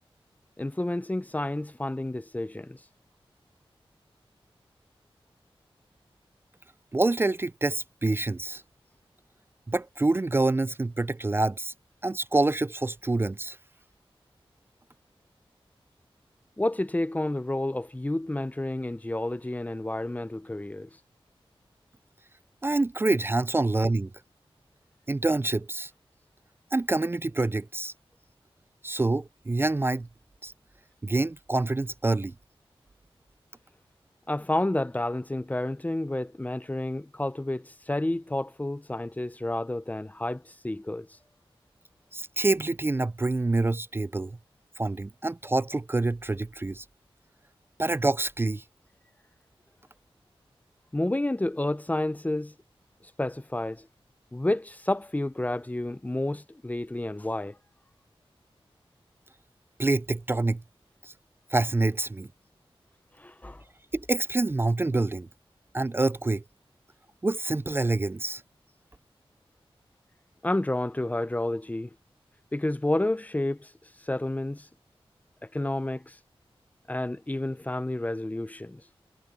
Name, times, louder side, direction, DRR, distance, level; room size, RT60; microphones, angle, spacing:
voice 1, 0.6-2.8 16.6-20.9 34.3-41.1 50.9-52.5 53.2-53.9 54.3-57.5 63.2-63.6 70.4-71.9 72.5-73.7 74.1-74.7 75.5-76.1 76.9-78.8, left 1 dB, 15° left, 0.7 m, -30 dB
voice 2, 6.9-8.6 9.7-11.7 12.0-13.6 22.6-24.1 25.1-25.9 26.7-27.9 28.8-30.1 30.4-30.5 31.0-32.3 42.1-44.4 44.8-46.8 47.8-48.6 59.8-60.6 61.0-61.1 61.5-62.3 63.9-65.3 65.7-66.4 67.2-68.4, right 2 dB, 25° right, 0.3 m, -26 dB
wide cardioid pair, 70°, 10 cm